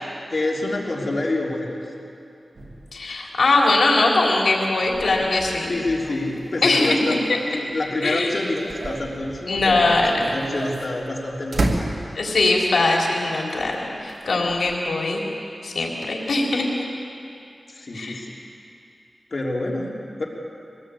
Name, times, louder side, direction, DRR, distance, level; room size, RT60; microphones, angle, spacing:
voice 1, 0.3-1.8 5.7-7.2 7.5-11.9 17.7-18.4 19.3-20.3, left 2 dB, 50° left, -2 dB, 3.3 m, -27 dB
sound 1, 2.6-7.9 8.3-12.5 13.5-15.0, right 2 dB, 70° right, 2.6 m, -33 dB
voice 2, 2.9-5.7 6.6-7.2 8.0-8.3 9.5-10.2 12.1-15.2 15.6-16.8 17.9-18.2, left 2 dB, 85° left, -2 dB, 3.8 m, -21 dB
23.5 x 18.5 x 8.5 m, 2.6 s
wide cardioid pair, 105°, 0 cm